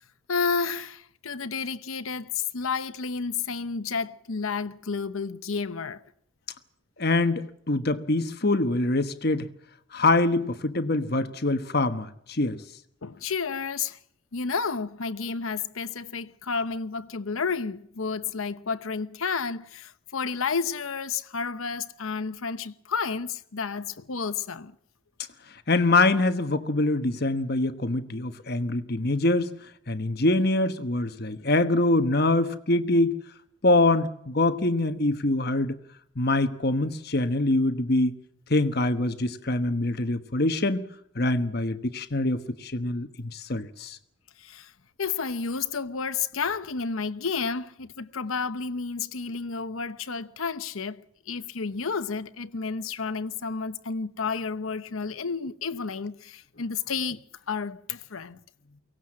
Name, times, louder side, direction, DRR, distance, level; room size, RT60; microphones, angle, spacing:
voice 1, 0.3-6.0 13.0-14.0 14.3-24.8 44.4-44.7 45.0-58.4, left 5 dB, 80° left, 0.9 m, -31 dB
voice 2, 7.0-9.5 9.9-12.6 25.7-29.5 29.9-33.2 33.6-35.8 36.2-38.1 38.5-40.9 41.1-44.0, left 2 dB, 50° left, 1.2 m, -24 dB
23.5 x 18.0 x 7.6 m
head